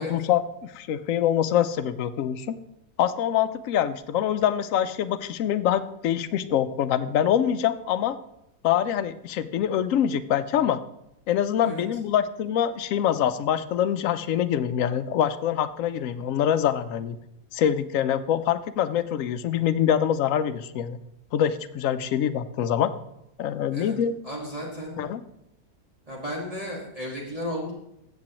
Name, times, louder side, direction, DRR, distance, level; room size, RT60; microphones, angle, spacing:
voice 1, 0.0-2.6 3.0-8.2 8.6-10.8 11.3-17.2 17.5-21.0 21.3-22.9 23.4-24.2 25.0-25.2, left 10 dB, 70° left, 13 dB, 0.9 m, -25 dB
voice 2, 24.2-25.0 26.1-27.7, equal, 25° right, -4 dB, 1.8 m, -34 dB
15.0 x 7.6 x 3.0 m, 0.83 s
omnidirectional pair, 1.5 m